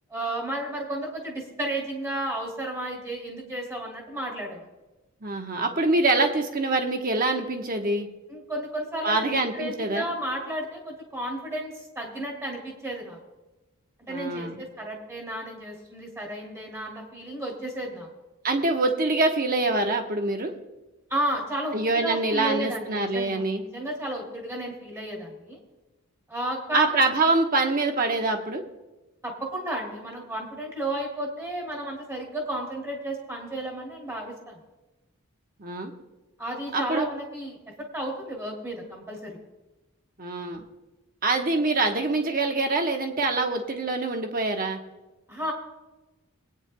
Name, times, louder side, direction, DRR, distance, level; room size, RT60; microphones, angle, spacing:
voice 1, 0.1-4.6 8.3-13.2 14.0-18.1 21.1-25.6 26.3-26.9 29.2-34.6 36.4-37.6 37.9-39.4 45.3-45.5, right 1 dB, 10° right, 0 dB, 2.6 m, -33 dB
voice 2, 5.2-8.1 9.0-10.0 14.1-14.6 18.4-20.5 21.7-23.6 26.7-28.6 35.6-35.9 36.7-37.0 40.2-40.6 41.2-44.8, right 2 dB, 40° right, 4 dB, 1.1 m, -25 dB
26.5 x 9.4 x 2.2 m, 1.1 s
head